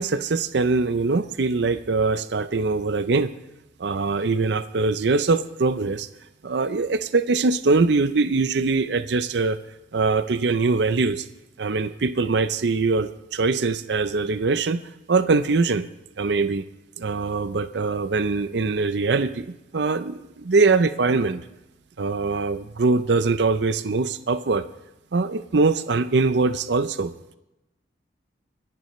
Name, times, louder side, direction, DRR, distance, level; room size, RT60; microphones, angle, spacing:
voice 1, 0.0-3.3 3.8-6.1 6.4-9.6 9.9-11.3 11.6-14.8 15.1-15.9 16.2-16.6 17.0-21.4 22.0-24.6 25.1-27.1, right 3 dB, 65° right, 12 dB, 0.6 m, -22 dB
25.0 x 10.5 x 3.1 m, 0.95 s
head